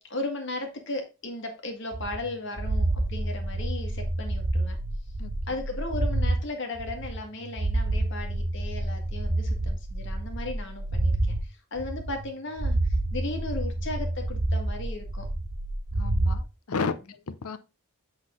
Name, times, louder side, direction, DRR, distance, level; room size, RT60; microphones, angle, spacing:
voice 1, 0.0-4.8 5.5-15.3, left 2 dB, 55° left, 1.7 m, -36 dB
sound 1, 1.9-6.4 6.8-11.4 11.8-12.3 12.6-16.4, right 1 dB, 70° right, 1.3 m, -28 dB
voice 2, 15.9-17.6, left 4 dB, 85° left, 0.7 m, -33 dB
8.0 x 4.0 x 3.7 m
head